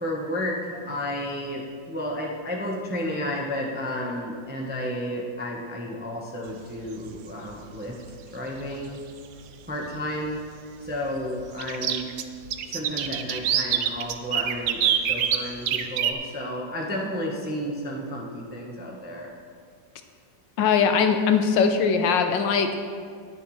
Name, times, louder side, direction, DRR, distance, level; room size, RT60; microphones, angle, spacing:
voice 1, 0.0-8.0 8.3-9.0 9.7-10.4 10.8-12.1 12.7-19.3, left 1 dB, 10° right, -1 dB, 0.6 m, -32 dB
sound 1, 6.8-7.1 8.7-8.8 9.2-9.3 11.6-16.1, right 9 dB, 70° right, 0.8 m, -25 dB
voice 2, 20.6-22.7, left 6 dB, 75° left, 6 dB, 1.4 m, -21 dB
19.0 x 6.7 x 3.2 m, 2.1 s
omnidirectional pair, 2.1 m